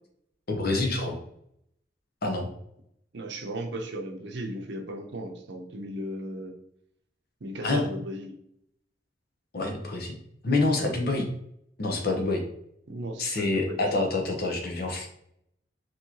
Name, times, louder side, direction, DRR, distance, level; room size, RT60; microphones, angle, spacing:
voice 1, 0.5-1.2 2.2-2.5 7.6-7.8 9.5-10.1 10.4-11.3 11.8-12.4 13.2-15.1, left 2 dB, 60° left, 2 dB, 0.9 m, -27 dB
voice 2, 3.1-6.5 7.4-8.3 12.9-13.8, right 1 dB, 70° right, 4 dB, 0.7 m, -36 dB
4.6 x 3.0 x 2.9 m, 0.72 s
head